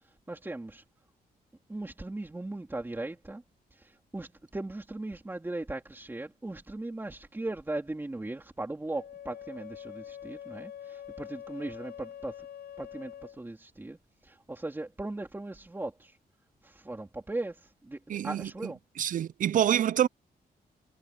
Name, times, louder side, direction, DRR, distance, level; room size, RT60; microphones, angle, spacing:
voice 1, 0.3-0.8 1.7-3.4 3.7-12.5 12.8-14.0 14.2-16.2 16.6-18.8, right 2 dB, 15° right, 3.5 m, -38 dB
Wind instrument woodwind instrument, 8.9-13.4, left 9 dB, 75° left, 5.6 m, -45 dB
voice 2, 18.1-18.5 19.0-20.1, right 10 dB, 55° right, 0.4 m, -26 dB
wide cardioid pair, 150°, 16 cm